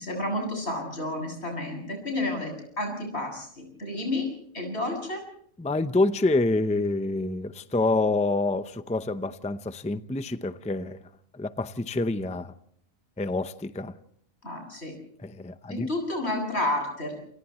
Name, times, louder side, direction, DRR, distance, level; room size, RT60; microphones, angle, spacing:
voice 1, 0.0-4.3 4.5-5.2 14.4-14.9 15.7-17.2, left 1 dB, 50° left, 2 dB, 8.1 m, -31 dB
voice 2, 5.6-11.0 11.3-12.5 13.2-13.9 15.2-15.9, left 2 dB, 5° left, 11 dB, 0.5 m, -27 dB
29.5 x 29.0 x 3.1 m, 0.64 s
omnidirectional pair, 1.4 m